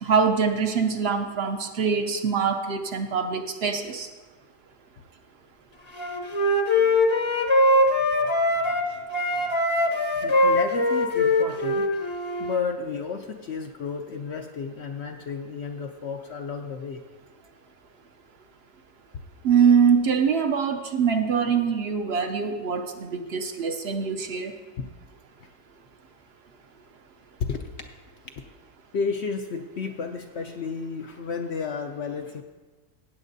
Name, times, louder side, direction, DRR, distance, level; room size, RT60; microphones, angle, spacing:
voice 1, 0.0-4.1 19.4-24.5, right 6 dB, 65° right, 6 dB, 0.6 m, -23 dB
Wind instrument woodwind instrument, 6.0-8.9 9.1-12.6, left 1 dB, 30° left, 0.6 m, -22 dB
voice 2, 10.2-11.9 12.4-17.0 24.8-24.9 25.4-25.5 27.4-27.6 28.9-32.4, left 5 dB, 70° left, 5 dB, 0.6 m, -32 dB
16.0 x 8.9 x 2.7 m, 1.3 s
omnidirectional pair, 1.7 m